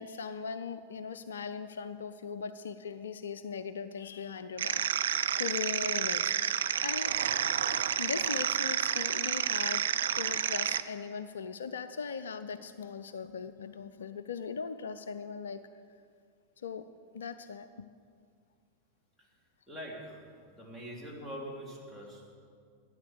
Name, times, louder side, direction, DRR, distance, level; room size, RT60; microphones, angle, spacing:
voice 1, 0.0-4.8 5.1-7.1 7.6-7.7 8.0-9.9 10.1-15.7 16.6-16.9 17.1-17.9, left 6 dB, 65° left, 12 dB, 0.4 m, -39 dB
sound 1, 4.6-10.8, right 9 dB, 65° right, 0.4 m, -30 dB
voice 2, 19.7-20.2 20.5-22.4, equal, ahead, -5 dB, 3.2 m, -44 dB
13.0 x 9.4 x 6.7 m, 2.2 s
figure-of-eight pair, 90°, 0 cm